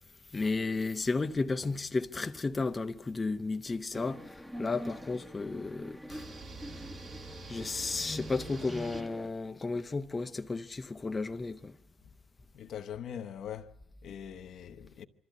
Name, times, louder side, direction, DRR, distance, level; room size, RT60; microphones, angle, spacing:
voice 1, 0.3-6.4 6.6-6.9 7.4-11.8, left 3 dB, 25° left, 0.8 m, -33 dB
sound 1, 3.9-9.3, equal, 5° right, 1.2 m, -44 dB
sound 2, 6.1-9.0, right 3 dB, 55° right, 3.1 m, -46 dB
voice 2, 12.5-15.1, left 9 dB, 70° left, 1.0 m, -42 dB
24.5 x 14.0 x 9.4 m
cardioid pair, 90°, 0 cm